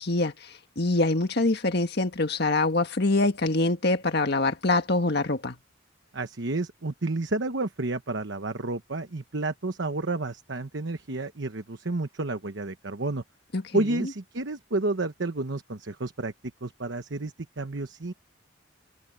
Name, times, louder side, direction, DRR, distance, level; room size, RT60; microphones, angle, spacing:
voice 1, 0.0-5.6 13.5-14.1, left 2 dB, 55° left, 1.7 m, -25 dB
voice 2, 6.1-13.2 13.7-16.3 16.6-18.1, right 2 dB, 60° right, 1.1 m, -30 dB
head